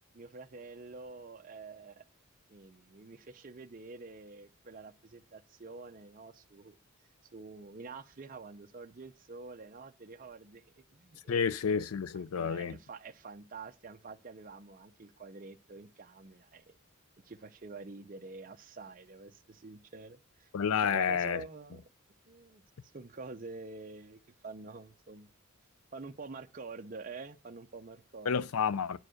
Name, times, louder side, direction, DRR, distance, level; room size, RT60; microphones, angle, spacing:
voice 1, 0.1-2.0 2.5-6.8 7.3-11.6 12.3-16.8 17.2-20.5 20.8-21.8 22.3-22.6 22.9-25.3 25.9-28.5, right 3 dB, 40° right, 0.6 m, -47 dB
voice 2, 11.3-12.8 20.5-21.4 28.3-29.0, left 6 dB, 85° left, 0.5 m, -30 dB
9.8 x 4.8 x 6.3 m
head